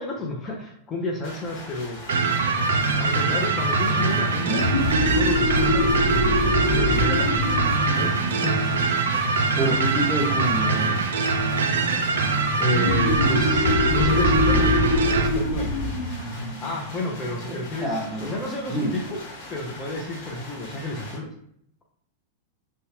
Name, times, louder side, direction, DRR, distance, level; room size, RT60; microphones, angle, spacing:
voice 1, 0.0-2.0 3.0-7.6 7.9-9.0 12.6-15.9 16.6-17.9 18.2-19.2 19.5-21.3, left 2 dB, 20° left, -1 dB, 0.6 m, -30 dB
sound 1, 1.2-21.2, left 2 dB, 45° left, 1.2 m, -41 dB
sound 2, 2.1-15.3, right 4 dB, 65° right, 0.3 m, -23 dB
sound 3, 4.4-9.7 12.7-18.0, left 1 dB, 80° left, 0.8 m, -25 dB
voice 2, 9.6-11.0 17.8-18.3 18.7-18.9, right 1 dB, 20° right, 0 dB, 0.7 m, -26 dB
2.6 x 2.2 x 3.1 m, 0.68 s
figure-of-eight pair, 90°, 0 cm